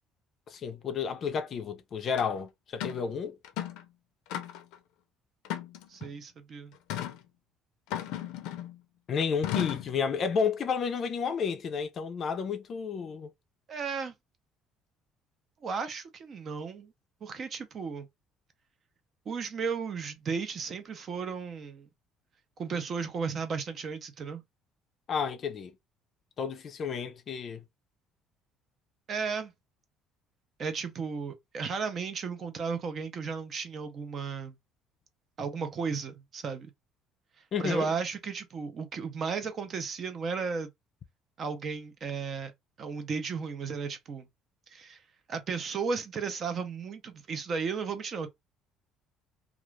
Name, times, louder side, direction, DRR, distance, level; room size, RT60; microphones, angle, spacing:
voice 1, 0.5-3.4 9.1-13.3 25.1-25.7 26.4-27.6 37.5-37.9, left 6 dB, 40° left, 0.4 m, -31 dB
sound 1, 2.2-2.3 2.8-3.0 3.4-3.9 4.3-4.8 5.4-6.1 6.9-7.2 7.9-8.8 9.4-9.9, left 12 dB, 85° left, 0.5 m, -35 dB
voice 2, 5.9-6.7 13.7-14.1 15.6-16.9 17.2-18.1 19.3-21.9 22.6-24.4 29.1-29.5 30.6-34.6 35.4-36.7 37.6-40.7 41.4-42.5 42.8-44.3 44.7-45.0 45.3-48.3, right 5 dB, 35° right, 0.5 m, -34 dB
2.4 x 2.4 x 3.1 m
cardioid pair, 150°, 0 cm